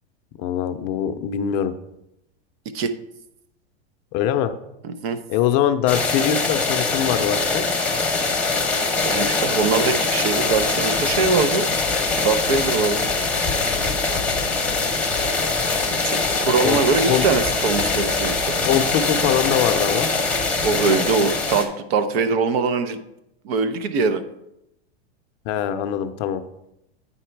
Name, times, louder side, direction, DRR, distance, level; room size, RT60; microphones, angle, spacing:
voice 1, 0.4-1.7 4.1-4.5 5.3-7.7 16.6-16.8 17.1-17.2 18.7-20.1 25.5-26.4, left 9 dB, 40° left, 9 dB, 0.6 m, -22 dB
voice 2, 4.8-5.2 9.0-11.7 12.2-13.1 15.9-18.6 20.6-23.0 23.4-24.2, right 4 dB, 65° right, 11 dB, 0.9 m, -22 dB
sound 1, 5.9-21.6, left 3 dB, 5° left, 0.9 m, -23 dB
9.3 x 4.1 x 4.5 m, 0.85 s
supercardioid pair, 135°, 33 cm